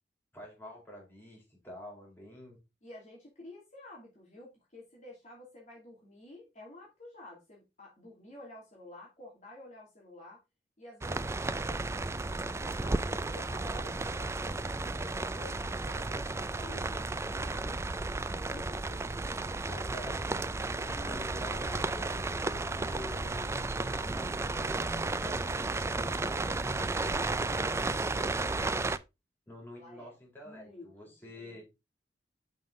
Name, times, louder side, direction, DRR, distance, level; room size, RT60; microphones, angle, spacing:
voice 1, 0.3-2.6 19.7-20.3 21.1-24.9 25.2-28.5 29.5-31.6, left 1 dB, 10° left, 4.0 m, -48 dB
voice 2, 2.8-10.4 10.8-11.9 12.4-18.1 18.5-19.0 20.7-21.5 29.8-30.2 30.4-31.6, left 1 dB, 40° left, 2.7 m, -51 dB
sound 1, 11.0-29.0, right 3 dB, 15° right, 0.3 m, -33 dB
sound 2, 17.9-27.2, left 3 dB, 75° left, 0.6 m, -56 dB
7.6 x 5.4 x 3.8 m
head